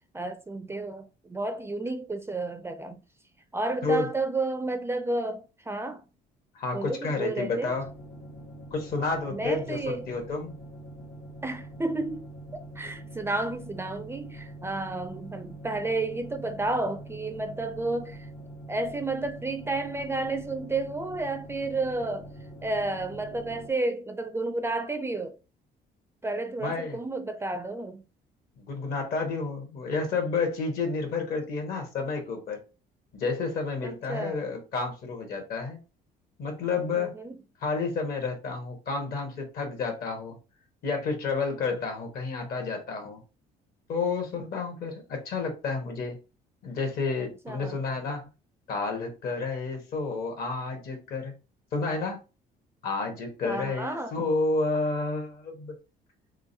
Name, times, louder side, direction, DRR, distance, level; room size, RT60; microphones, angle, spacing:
voice 1, 0.1-3.0 3.5-6.0 6.7-7.7 9.3-10.1 11.4-12.3 12.8-18.3 18.7-22.3 22.6-25.4 26.2-28.0 33.8-34.4 37.0-37.4 47.2-47.8 53.5-54.1, right 2 dB, 15° right, 0.4 m, -31 dB
voice 2, 6.5-7.9 8.7-10.5 26.6-27.0 28.6-32.6 33.1-35.8 36.4-37.2 37.6-40.4 40.8-43.2 43.9-46.2 46.6-48.3 48.7-51.3 51.7-52.2 52.8-55.7, left 4 dB, 65° left, 1.4 m, -30 dB
sound 1, 7.7-23.7, right 1 dB, 85° left, 1.8 m, -44 dB
3.8 x 3.3 x 2.7 m
cardioid pair, 110°, 17 cm